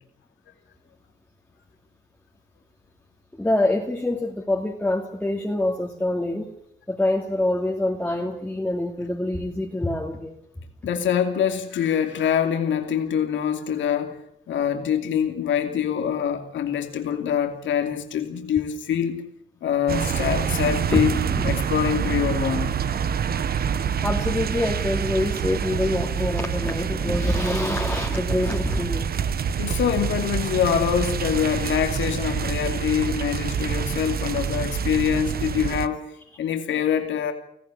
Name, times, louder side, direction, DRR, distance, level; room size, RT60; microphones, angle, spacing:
voice 1, 3.3-6.5 6.9-10.4 20.9-21.0 21.3-21.5 24.0-29.1, left 1 dB, 5° left, -1 dB, 2.6 m, -25 dB
voice 2, 10.8-14.2 14.5-19.2 19.6-21.2 21.4-22.7 29.6-36.0 36.4-37.3, left 8 dB, 70° left, 5 dB, 2.7 m, -24 dB
sound 1, 19.9-35.9, right 7 dB, 50° right, 1.1 m, -26 dB
20.0 x 15.0 x 9.9 m, 0.75 s
cardioid pair, 90°, 20 cm